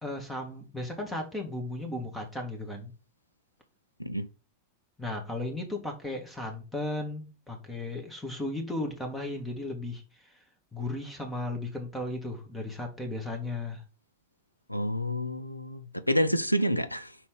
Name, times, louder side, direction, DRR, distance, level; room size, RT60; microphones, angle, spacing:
voice 1, 0.0-2.9 5.0-10.4 10.7-13.8, left 2 dB, 10° left, 1.8 m, -35 dB
voice 2, 14.7-17.2, equal, 90° left, 0.6 m, -28 dB
4.6 x 4.0 x 5.3 m
figure-of-eight pair, 90°, 0 cm